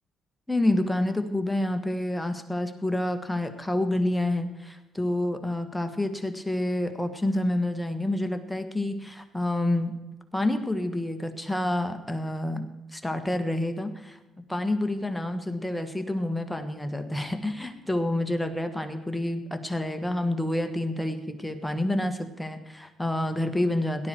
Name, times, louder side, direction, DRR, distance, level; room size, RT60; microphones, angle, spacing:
voice 1, 0.5-10.0 10.3-14.2 14.5-24.1, left 1 dB, 5° left, 6 dB, 1.5 m, -28 dB
17.5 x 12.0 x 4.5 m, 1.0 s
cardioid pair, 90°, 0 cm